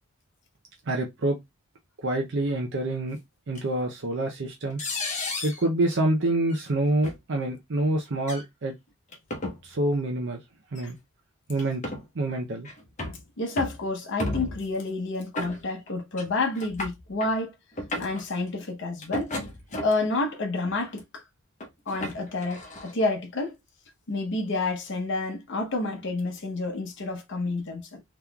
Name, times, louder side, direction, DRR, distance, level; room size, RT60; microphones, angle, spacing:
voice 1, 0.9-1.4 2.0-3.2 3.5-4.8 5.4-8.7 9.6-10.4 10.7-11.0 11.5-11.8 12.2-12.7, right 1 dB, 55° right, 0.6 m, -26 dB
sound 1, 3.6-3.7 4.8-5.6 6.5-6.7 7.0-7.2 8.2-8.4 9.1-9.6 10.8-10.9 11.6-12.0 12.6-13.2 13.6-13.8 14.2-14.7 15.4-15.9 16.2-16.3 16.6-17.3 17.7-18.2 19.0-20.1 20.7-21.0 21.6-22.9, left 2 dB, 35° left, 1.0 m, -33 dB
voice 2, 13.4-17.5 18.0-19.3 19.8-21.2 21.9-23.6 24.1-28.0, left 2 dB, 60° left, 0.7 m, -29 dB
3.6 x 2.9 x 2.3 m
head